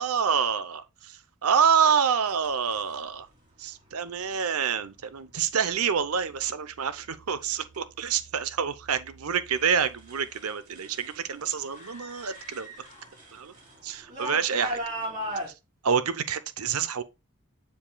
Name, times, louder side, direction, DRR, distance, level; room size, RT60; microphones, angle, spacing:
voice 1, 0.0-3.3 3.6-12.7 13.3-13.5 13.8-14.8 15.8-17.0, right 7 dB, 75° right, 0.7 m, -27 dB
sound 1, 2.3-3.0 4.1-4.4 5.0-5.4 6.0-6.5 6.9-11.2 11.4-15.5, equal, 35° right, 3.1 m, -39 dB
sound 2, 11.6-13.4, right 1 dB, 30° left, 1.7 m, -49 dB
7.4 x 7.0 x 2.3 m
head